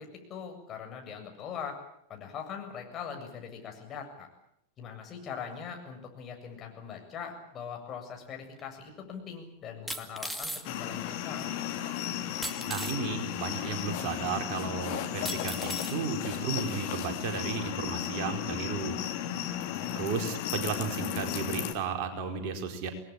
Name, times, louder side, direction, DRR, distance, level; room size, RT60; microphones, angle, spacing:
voice 1, 0.0-1.8 2.1-4.3 4.8-11.5 19.7-20.1, left 7 dB, 30° left, 3 dB, 7.5 m, -41 dB
sound 1, 8.6-8.7 9.9-10.6 12.4-13.0 14.0-14.1 15.3-16.0 16.7-16.8, right 1 dB, 5° right, 2.4 m, -37 dB
sound 2, 10.6-21.7, left 11 dB, 45° left, 3.3 m, -35 dB
voice 2, 12.7-19.0 19.9-22.9, right 5 dB, 45° right, 4 dB, 4.5 m, -34 dB
28.5 x 20.0 x 8.7 m, 0.75 s
figure-of-eight pair, 90°, 0 cm